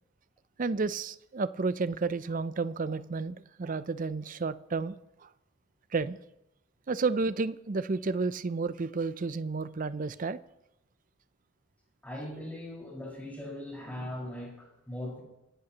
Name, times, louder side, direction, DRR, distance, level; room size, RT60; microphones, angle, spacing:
voice 1, 0.6-5.0 5.2-5.3 5.9-6.2 6.9-10.4, right 4 dB, 40° right, 0.5 m, -31 dB
voice 2, 12.0-15.2, left 1 dB, 10° left, 5.2 m, -40 dB
26.0 x 12.5 x 3.0 m
head